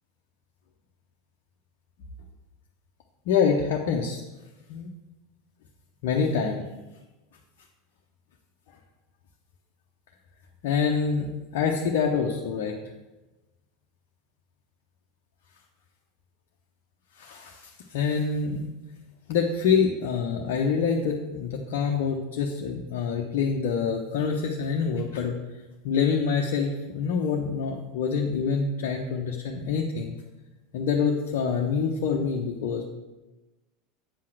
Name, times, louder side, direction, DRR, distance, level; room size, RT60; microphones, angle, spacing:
voice 1, 3.3-4.2 4.7-4.9 6.0-6.6 10.6-12.7 17.2-18.7 19.3-25.3 25.8-30.1 30.7-32.9, left 6 dB, 60° left, 0 dB, 0.9 m, -26 dB
8.5 x 5.7 x 6.2 m, 1.1 s
figure-of-eight pair, 80°, 0 cm